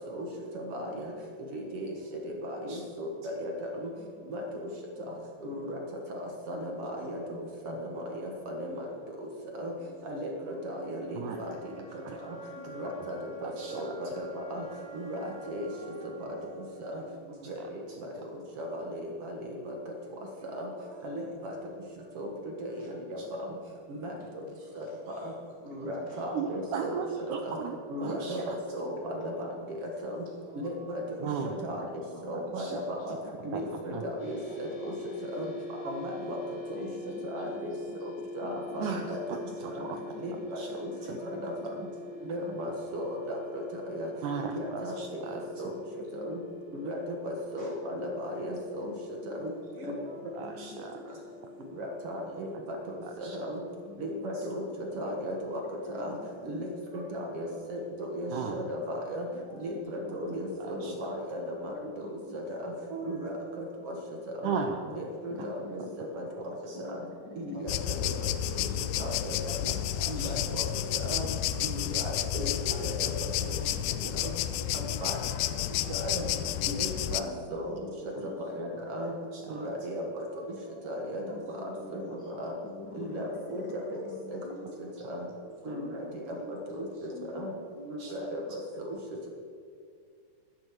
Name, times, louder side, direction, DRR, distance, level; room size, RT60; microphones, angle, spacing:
voice 1, 0.5-1.1 1.5-1.9 2.2-3.9 4.3-4.4 5.4-5.8 6.2-7.2 7.6-8.9 9.5-9.7 10.0-10.3 10.6-11.5 12.3-12.4 12.7-14.6 14.9-15.7 16.8-17.0 17.5-17.8 18.6-19.7 20.5-20.7 21.0-21.5 22.2-22.3 22.6-22.8 23.1-23.5 23.9-24.1 24.8-24.9 25.2-25.3 25.7-27.0 27.5-27.6 27.9-29.5 30.0-30.2 30.6-31.0 31.4-31.8 32.3-33.1 33.5-34.9 35.3-35.5 35.8-36.4 36.8-36.9 37.3-37.7 38.4-39.5 39.7-39.8 40.2-40.9 41.4-41.7 42.2-43.6 43.9-44.1 44.4-45.7 46.1-46.4 46.7-48.9 49.3-49.5 49.8-50.0 51.8-52.5 53.2-53.6 54.0-55.6 56.0-56.1 56.5-59.3 59.6-61.7 62.3-63.9 64.4-64.5 65.0-65.8 66.1-66.2 67.4-68.3 69.0-69.7 70.1-70.6 70.9-71.3 71.6-73.1 74.1-74.3 74.7-75.2 75.9-76.3 76.7-77.3 77.5-77.8 78.6-79.1 79.5-80.0 80.8-81.4 81.6-82.0 82.4-82.5 82.9-84.0 84.3-84.4 85.1-85.3 85.7-87.1 87.3-87.5 88.1-89.0, equal, 55° right, 1 dB, 1.8 m, -36 dB
voice 2, 4.0-5.7 6.1-6.2 22.8-22.9 24.2-26.8 28.0-28.2 31.3-31.9 32.1-34.0 34.7-35.6 36.7-38.0 38.4-41.9 45.7-46.9 47.6-47.7 48.0-48.5 48.8-50.1 50.4-52.5 53.7-55.1 55.6-57.2 57.5-57.8 59.5-60.4 60.8-60.9 61.7-62.4 63.0-63.2 65.3-66.0 66.7-67.6 68.0-68.1 68.5-68.8 69.1-69.2 71.2-71.9 73.4-74.2 74.6-74.7 75.3-80.0 81.2-84.8 85.6-88.2, left 3 dB, 60° left, -1 dB, 1.2 m, -48 dB
sound 1, 9.7-17.6, right 3 dB, 15° right, 3.3 m, -48 dB
voice 3, 13.4-14.0 23.2-23.3 26.3-28.6 31.2-31.6 32.3-32.8 33.9-34.0 38.8-40.0 40.6-40.7 41.0-41.2 44.2-45.5 50.4-51.0 53.0-53.4 54.4-54.5 58.3-58.7 60.6-60.9 64.4-64.8 66.7-66.8 69.7-70.4 78.2-78.3 79.3-79.6 88.0-88.1, right 6 dB, 75° right, 4 dB, 1.8 m, -36 dB
sound 2, 34.2-53.9, left 2 dB, 45° left, 2.8 m, -45 dB
sound 3, 67.7-77.2, left 12 dB, 80° left, 2.1 m, -31 dB
11.5 x 9.8 x 7.7 m, 2.2 s
omnidirectional pair, 4.3 m